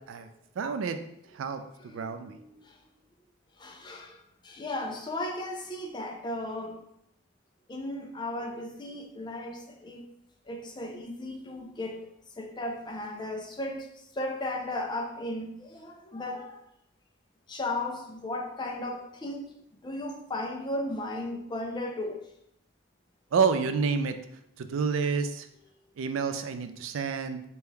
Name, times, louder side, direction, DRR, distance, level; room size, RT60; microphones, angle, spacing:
voice 1, 0.6-1.0 1.3-2.4 23.3-24.2 24.6-25.5 26.0-27.4, right 5 dB, 80° right, 9 dB, 0.4 m, -29 dB
voice 2, 1.8-2.8 3.6-6.8 7.7-10.1 10.5-12.1 12.4-13.9 14.1-16.6 17.5-19.5 19.8-22.2, left 1 dB, 25° left, 3 dB, 0.4 m, -35 dB
3.3 x 2.9 x 3.6 m, 0.76 s
head